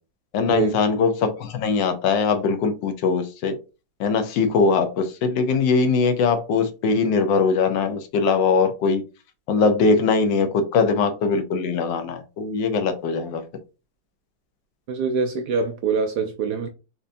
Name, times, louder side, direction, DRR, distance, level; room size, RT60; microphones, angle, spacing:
voice 1, 0.3-3.5 4.0-9.0 9.5-13.4, left 4 dB, 75° left, 1.3 m, -21 dB
voice 2, 14.9-16.7, right 5 dB, 75° right, 0.9 m, -24 dB
4.4 x 2.6 x 2.6 m
omnidirectional pair, 2.1 m